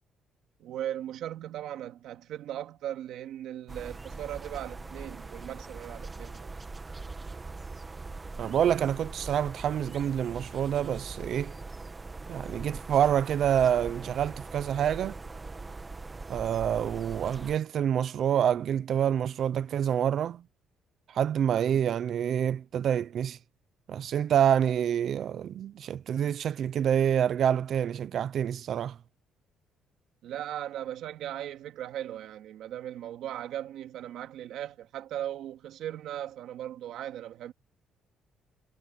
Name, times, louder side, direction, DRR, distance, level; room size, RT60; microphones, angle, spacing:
voice 1, 0.6-6.5 30.2-37.5, right 11 dB, 75° right, 2.2 m, -38 dB
sound 1, 3.7-17.6, right 3 dB, 20° right, 1.6 m, -42 dB
voice 2, 8.4-11.5 12.3-15.2 16.3-20.4 21.1-23.4 23.9-28.9, right 9 dB, 55° right, 0.6 m, -27 dB
cardioid pair, 135°, 0 cm